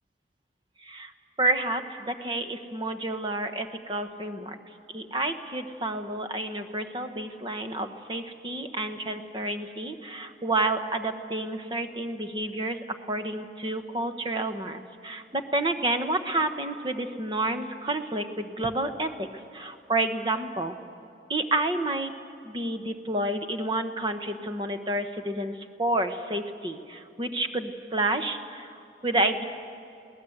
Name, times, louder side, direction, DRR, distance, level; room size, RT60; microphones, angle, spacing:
voice 1, 1.4-4.6 4.9-12.8 13.1-19.3 19.5-20.7 21.3-22.1 22.4-25.5 25.8-29.4, right 2 dB, 25° right, 8 dB, 1.0 m, -29 dB
22.5 x 18.5 x 8.0 m, 2.6 s
head